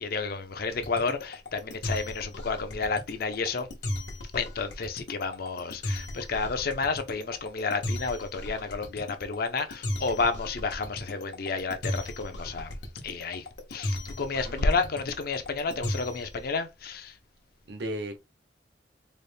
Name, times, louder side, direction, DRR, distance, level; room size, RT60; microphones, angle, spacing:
voice 1, 0.0-3.7 4.3-12.7 13.0-13.5 13.7-17.1, left 4 dB, 55° left, 0.5 m, -31 dB
sound 1, 0.7-16.4, left 1 dB, 85° left, 1.0 m, -35 dB
voice 2, 14.4-14.9 17.7-18.2, right 1 dB, 70° right, 0.8 m, -36 dB
4.0 x 2.1 x 3.3 m
head